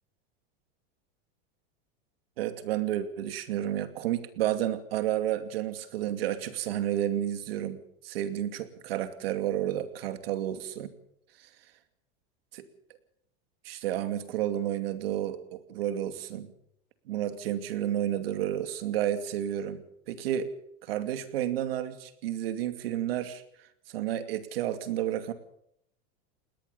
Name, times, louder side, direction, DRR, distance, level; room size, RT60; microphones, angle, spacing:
voice 1, 2.4-10.9 11.4-11.5 12.5-12.7 13.6-16.5 17.1-20.5 20.8-25.3, right 11 dB, 90° right, 10 dB, 2.6 m, -31 dB
20.0 x 19.0 x 7.0 m, 0.74 s
supercardioid pair, 165°, 29 cm